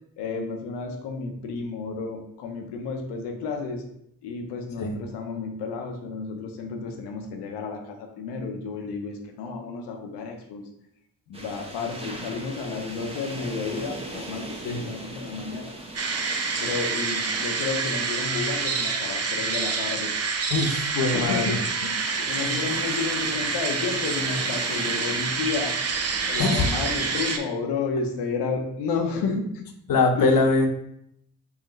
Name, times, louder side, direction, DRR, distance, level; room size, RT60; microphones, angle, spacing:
voice 1, 0.2-3.8 4.2-10.6 11.3-15.7 16.6-20.1 21.1-25.8 26.3-29.6 30.2-30.3, left 4 dB, 85° left, 4 dB, 0.7 m, -31 dB
sound 1, 11.3-27.4, right 1 dB, 15° right, 1.0 m, -40 dB
sound 2, 15.9-27.4, right 4 dB, 40° right, 0.6 m, -27 dB
voice 2, 20.5-21.6 26.4-26.7 29.9-30.7, left 3 dB, 55° left, 5 dB, 0.8 m, -22 dB
4.6 x 2.4 x 3.1 m, 0.74 s
supercardioid pair, 50°, 40 cm